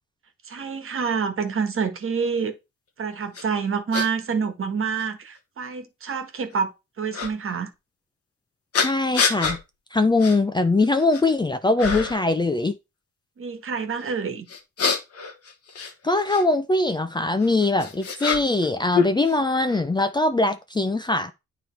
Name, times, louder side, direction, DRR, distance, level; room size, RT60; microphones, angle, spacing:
voice 1, 0.5-2.5 3.0-6.7 7.0-7.7 13.4-14.5, right 6 dB, 45° right, 1.5 m, -27 dB
sound 1, 3.3-3.4 3.9-4.1 5.0-5.1 7.1-7.3 8.7-9.6 10.2-10.4 10.8-11.3 11.8-12.3 14.5-16.4 17.4-18.7 18.9-19.8, left 5 dB, 50° left, 1.5 m, -26 dB
voice 2, 8.8-9.6 9.9-12.8 16.0-21.3, left 2 dB, 15° left, 0.6 m, -22 dB
9.2 x 3.3 x 4.4 m
cardioid pair, 90°, 30 cm